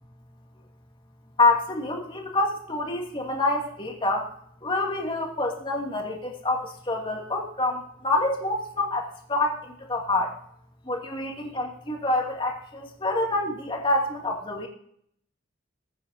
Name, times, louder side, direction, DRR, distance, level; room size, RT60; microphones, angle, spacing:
voice 1, 1.4-4.3 4.6-10.3 10.9-14.7, left 2 dB, 25° left, 0 dB, 2.5 m, -27 dB
21.0 x 9.5 x 2.8 m, 0.66 s
head